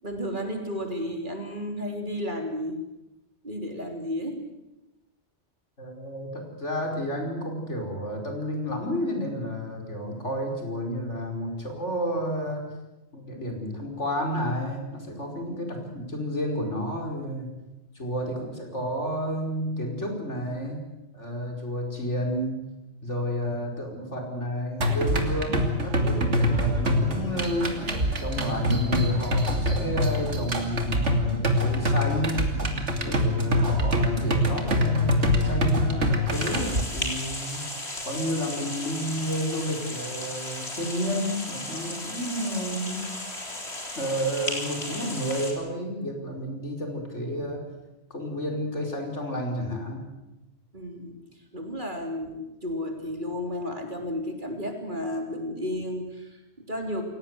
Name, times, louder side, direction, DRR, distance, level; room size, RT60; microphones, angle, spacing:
voice 1, 0.0-2.8 3.4-4.4 50.7-51.2 51.5-57.0, left 1 dB, 45° right, 3 dB, 3.8 m, -32 dB
voice 2, 5.8-12.7 13.1-17.5 17.9-20.8 21.1-22.6 23.0-27.8 28.2-32.4 33.0-43.0 43.9-47.6 48.1-50.0, equal, 80° left, 2 dB, 5.3 m, -31 dB
sound 1, 24.8-36.8, left 1 dB, 80° right, 3.0 m, -25 dB
sound 2, 36.3-45.5, left 1 dB, 65° left, 4.5 m, -35 dB
28.5 x 17.5 x 8.1 m, 0.97 s
omnidirectional pair, 1.2 m